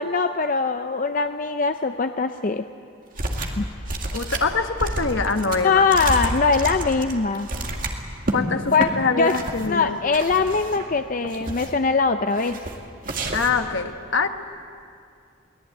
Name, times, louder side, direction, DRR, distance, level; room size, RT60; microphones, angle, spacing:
voice 1, 0.0-2.6 3.6-3.7 5.6-7.5 8.7-9.3 9.7-12.6, left 4 dB, 40° left, 8 dB, 0.5 m, -22 dB
sound 1, 3.2-3.6 3.9-8.4 8.7-8.9 9.3-9.7 10.1-10.9 11.2-11.8 12.4-12.8 13.0-13.7, right 2 dB, 40° right, 2.1 m, -29 dB
voice 2, 4.1-5.8 8.3-10.0 13.3-14.3, left 4 dB, 65° left, 7 dB, 1.2 m, -24 dB
23.0 x 18.0 x 9.0 m, 2.4 s
head